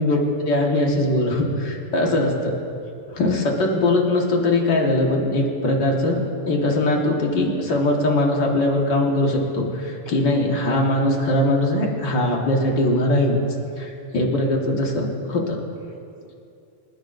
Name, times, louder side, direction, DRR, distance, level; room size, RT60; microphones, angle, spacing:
voice 1, 0.0-2.5 3.1-13.4 13.8-15.6, left 1 dB, 45° left, -1 dB, 1.8 m, -21 dB
27.5 x 10.5 x 2.6 m, 2.6 s
omnidirectional pair, 3.4 m